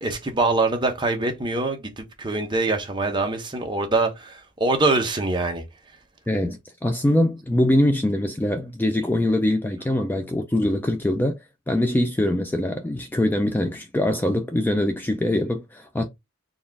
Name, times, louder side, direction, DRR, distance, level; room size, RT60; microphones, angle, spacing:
voice 1, 0.0-5.6, right 2 dB, 25° right, 0.8 m, -24 dB
voice 2, 6.3-11.4 11.7-16.0, left 1 dB, 10° left, 0.4 m, -23 dB
4.1 x 2.4 x 3.4 m
head